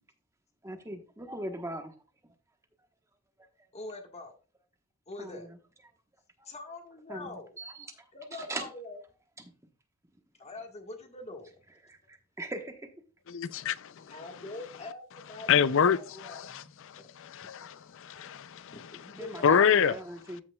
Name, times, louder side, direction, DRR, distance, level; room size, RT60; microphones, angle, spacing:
voice 1, 0.6-1.9 5.2-5.6 6.4-6.5 7.1-8.1 8.4-8.7 11.9-12.9 18.1-18.3 19.2-20.4, right 1 dB, 15° right, 1.1 m, -40 dB
voice 2, 3.7-4.3 5.1-5.5 6.4-7.6 8.1-9.0 10.4-11.6 14.1-16.7 17.0-17.1 17.4-17.5 18.7-20.0, left 2 dB, 30° left, 1.5 m, -44 dB
voice 3, 13.3-14.0 15.5-16.0 17.3-18.7 19.4-20.0, left 7 dB, 60° left, 0.5 m, -25 dB
14.0 x 5.9 x 2.3 m
head